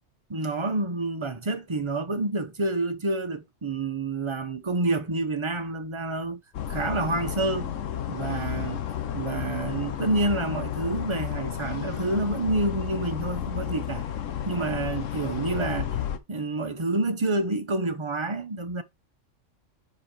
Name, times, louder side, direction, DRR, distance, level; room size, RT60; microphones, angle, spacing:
voice 1, 0.3-6.4 6.7-7.8 8.1-8.8 9.1-14.1 14.5-16.0 16.3-18.8, right 2 dB, 30° right, 0.7 m, -28 dB
sound 1, 6.5-16.2, left 10 dB, 85° left, 1.2 m, -32 dB
5.1 x 5.1 x 4.3 m
omnidirectional pair, 1.3 m